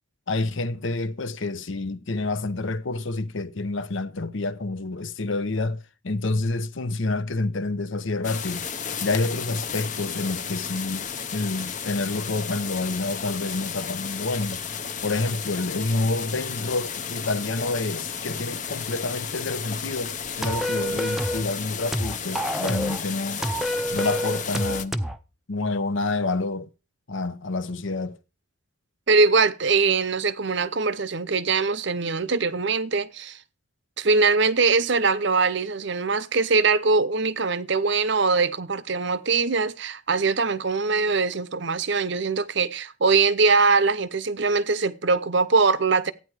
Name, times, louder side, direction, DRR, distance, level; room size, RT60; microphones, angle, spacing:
voice 1, 0.3-8.7 9.0-14.6 15.0-23.4 23.9-25.0 25.5-26.7 27.1-28.2, left 2 dB, 65° left, 0.8 m, -28 dB
sound 1, 8.2-24.9, left 7 dB, 35° left, 0.7 m, -33 dB
sound 2, 20.4-21.5 21.9-23.0 23.4-25.2, equal, ahead, 0.6 m, -27 dB
voice 2, 29.1-33.4 34.0-46.1, right 4 dB, 55° right, 0.8 m, -22 dB
14.0 x 9.3 x 4.8 m
head